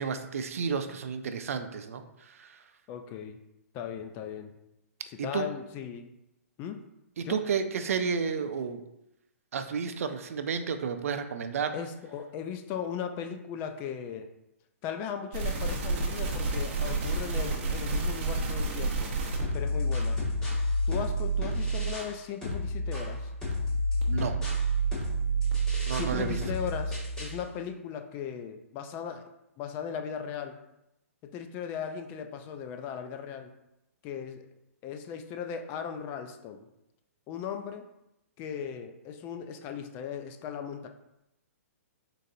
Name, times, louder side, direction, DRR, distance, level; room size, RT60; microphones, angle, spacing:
voice 1, 0.0-2.0 2.4-2.5 5.2-5.5 7.2-8.8 9.5-11.7 24.1-24.3 25.9-26.4, right 6 dB, 70° right, 9 dB, 0.5 m, -31 dB
voice 2, 2.9-3.4 3.7-4.5 5.2-6.1 6.6-6.8 7.2-7.4 11.7-14.3 14.8-19.1 19.5-20.2 20.9-23.3 25.9-29.3 29.6-30.6 31.2-33.5 34.0-34.5 34.8-36.7 37.3-37.9 38.4-40.9, left 7 dB, 25° left, 6 dB, 0.3 m, -37 dB
sound 1, 15.3-19.5 20.0-20.1 20.5-20.6 21.0-21.1 21.5-21.6 22.0-22.1 22.5-22.6 23.0-23.1 23.5-23.6 24.0-24.1 24.5-24.6 25.0-25.1 25.5-25.6, right 3 dB, 45° right, 0.8 m, -30 dB
sound 2, 19.4-22.2 22.4-27.4, right 1 dB, 10° left, 1.3 m, -29 dB
4.0 x 3.8 x 2.6 m, 0.87 s
hypercardioid pair, 145°, 8 cm